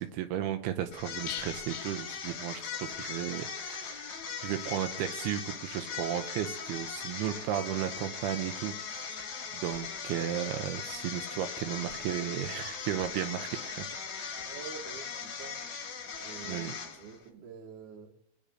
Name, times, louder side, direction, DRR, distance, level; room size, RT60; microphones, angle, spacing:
voice 1, 0.0-13.9 14.1-14.4 16.4-16.7, right 11 dB, 90° right, 7 dB, 2.3 m, -35 dB
sound 1, 0.9-17.2, left 6 dB, 55° left, 2.1 m, -39 dB
sound 2, 1.3-3.1 3.3-3.4 3.8-3.9, left 12 dB, 85° left, 2.7 m, -44 dB
voice 2, 14.4-15.6 16.2-16.7 17.0-18.1, right 6 dB, 65° right, 2 dB, 2.0 m, -46 dB
24.0 x 8.6 x 2.6 m, 0.80 s
omnidirectional pair, 5.1 m